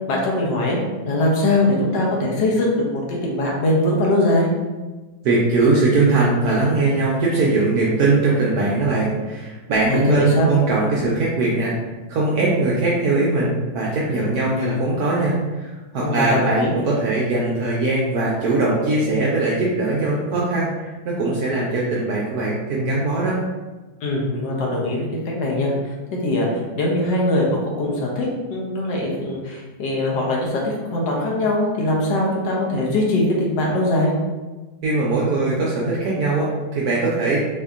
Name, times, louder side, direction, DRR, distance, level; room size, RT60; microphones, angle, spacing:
voice 1, 0.1-0.8 1.0-4.5 9.9-10.5 16.0-16.7 24.0-25.7 26.1-34.1, left 1 dB, 70° left, -2 dB, 1.2 m, -21 dB
voice 2, 5.2-11.7 12.1-23.4 34.8-37.4, right 3 dB, 75° right, -5 dB, 0.9 m, -20 dB
4.3 x 2.6 x 2.4 m, 1.2 s
omnidirectional pair, 2.1 m